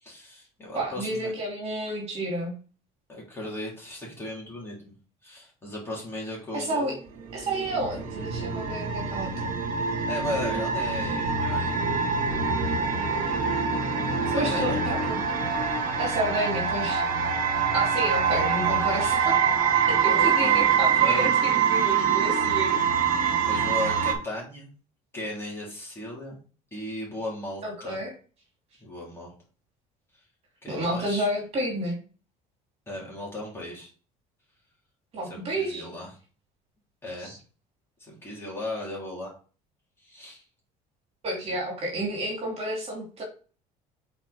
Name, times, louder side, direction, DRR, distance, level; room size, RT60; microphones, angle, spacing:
voice 1, 0.0-1.3 3.1-4.9 5.2-6.9 10.1-11.8 14.2-14.8 19.8-21.3 23.4-24.7 25.1-26.4 26.7-28.0 28.8-29.3 30.6-31.3 32.9-33.9 35.3-36.1 37.0-37.3 38.0-39.3 40.0-40.4, left 1 dB, 15° left, -4 dB, 3.3 m, -36 dB
voice 2, 0.7-2.5 6.5-6.9 7.3-9.3 14.3-15.3 16.0-17.1 17.7-19.4 19.8-22.8 27.6-28.1 30.7-32.0 35.1-35.9 37.2-37.4 41.2-43.2, right 1 dB, 40° right, -1 dB, 2.7 m, -30 dB
sound 1, 7.1-24.1, right 6 dB, 65° right, 1.7 m, -25 dB
5.5 x 4.5 x 4.3 m, 0.37 s
cardioid pair, 130°, 16 cm